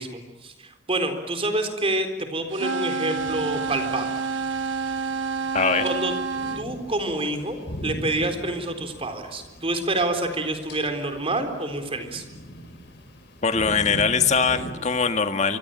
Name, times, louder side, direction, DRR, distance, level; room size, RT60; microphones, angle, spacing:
voice 1, 0.0-4.1 5.8-6.1 6.6-7.6 7.8-12.2, right 2 dB, 30° right, 7 dB, 3.9 m, -27 dB
sound 1, 2.5-6.6, right 4 dB, 80° right, 1.2 m, -28 dB
sound 2, 3.2-14.7, equal, 60° left, 5.7 m, -40 dB
voice 2, 5.5-5.8 13.4-15.6, left 5 dB, 40° left, 7 dB, 1.8 m, -22 dB
26.0 x 25.0 x 9.0 m, 1.2 s
head